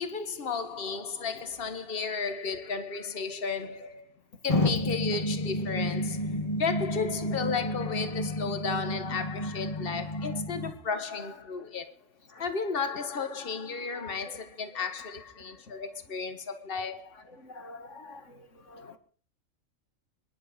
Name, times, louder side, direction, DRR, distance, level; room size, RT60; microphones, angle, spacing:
voice 1, 0.0-4.1 4.4-11.9 12.4-17.1, left 5 dB, 45° left, 1.7 m, -33 dB
sound 1, 4.5-10.7, left 1 dB, 25° left, 2.0 m, -31 dB
voice 2, 17.4-18.2 18.7-19.0, left 3 dB, 65° left, 2.5 m, -45 dB
24.5 x 11.0 x 5.2 m
omnidirectional pair, 1.4 m